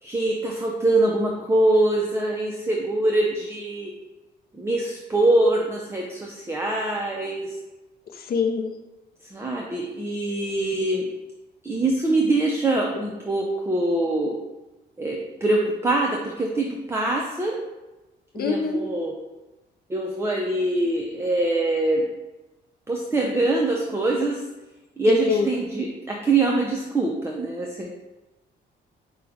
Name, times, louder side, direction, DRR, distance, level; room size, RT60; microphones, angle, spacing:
voice 1, 0.0-3.9 4.5-7.5 9.3-11.1 11.6-14.3 15.0-17.6 18.3-19.1 19.9-22.1 22.9-24.4 25.0-27.9, right 2 dB, 15° right, -1 dB, 0.5 m, -23 dB
voice 2, 8.3-8.7 18.3-18.8 25.1-25.5, left 5 dB, 50° left, 5 dB, 0.6 m, -24 dB
5.1 x 2.3 x 3.5 m, 1.1 s
cardioid pair, 90°, 20 cm